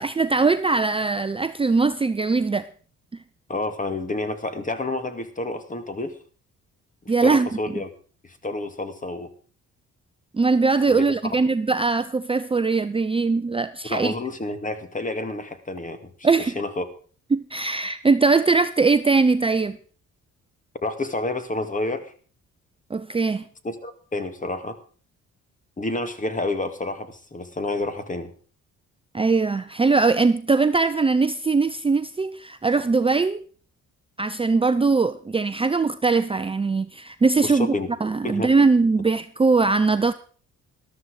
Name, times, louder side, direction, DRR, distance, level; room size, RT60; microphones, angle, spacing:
voice 1, 0.0-2.7 7.1-7.7 10.3-14.1 16.2-16.6 17.3-19.8 22.9-23.4 29.1-33.4 34.2-37.8 38.0-40.1, right 4 dB, 20° right, 0.6 m, -21 dB
voice 2, 3.5-6.1 7.2-7.9 8.2-9.3 10.9-11.0 13.9-16.3 16.6-16.8 20.8-22.1 23.6-24.8 25.8-28.3 37.4-37.9 38.2-38.5, left 2 dB, 25° left, 2.1 m, -29 dB
13.5 x 12.5 x 4.9 m
cardioid pair, 90°, 30 cm